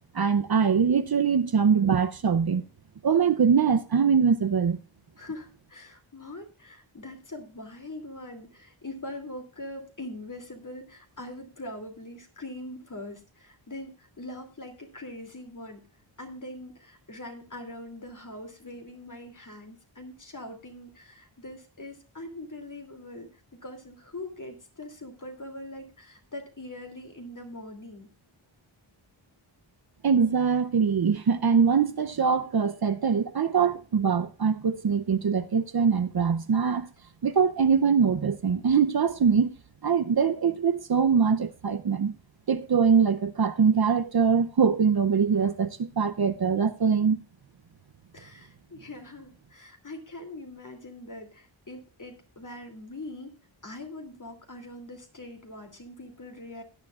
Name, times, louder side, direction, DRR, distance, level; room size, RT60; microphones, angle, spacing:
voice 1, 0.1-2.6 3.0-4.8 30.0-36.9 37.2-39.5 39.8-42.1 42.5-47.2, right 6 dB, 50° right, 0.7 m, -23 dB
voice 2, 5.2-15.9 16.2-28.1 48.1-53.4 53.6-56.6, left 1 dB, 40° left, 2.8 m, -42 dB
16.0 x 10.5 x 2.4 m
wide cardioid pair, 80°, 48 cm